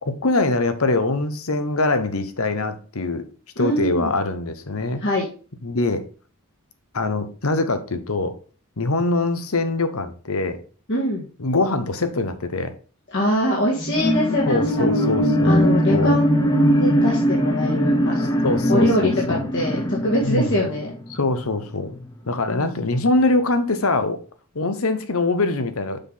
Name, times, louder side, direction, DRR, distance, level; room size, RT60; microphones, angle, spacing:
voice 1, 0.0-3.2 3.6-5.0 5.6-6.0 6.9-8.3 8.8-10.6 11.4-12.7 14.5-16.2 18.2-19.4 20.2-20.6 21.1-22.0 22.3-24.2 24.5-26.0, left 2 dB, 70° left, 10 dB, 1.0 m, -23 dB
voice 2, 3.6-4.1 5.0-5.2 10.9-11.3 13.1-15.1 15.4-18.4 18.7-20.9 22.5-22.7, equal, 55° left, -4 dB, 1.8 m, -23 dB
sound 1, 13.8-21.5 22.0-22.1, equal, 20° left, 0.7 m, -20 dB
6.8 x 5.8 x 4.0 m, 0.39 s
head